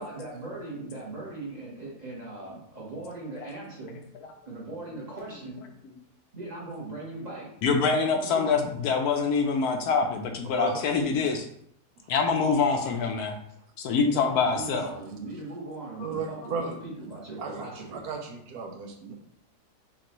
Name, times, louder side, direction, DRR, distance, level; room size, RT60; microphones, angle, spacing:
voice 1, 0.0-4.0 4.5-5.6 6.3-7.5 8.3-8.5 14.1-18.0, right 2 dB, 30° right, -4 dB, 1.0 m, -39 dB
voice 2, 7.6-11.5 12.1-13.3 13.8-14.9, left 5 dB, 75° left, 4 dB, 1.0 m, -25 dB
voice 3, 10.4-10.8 16.0-16.7 17.4-19.1, right 5 dB, 75° right, 3 dB, 1.0 m, -35 dB
5.8 x 2.4 x 3.0 m, 0.70 s
omnidirectional pair, 1.8 m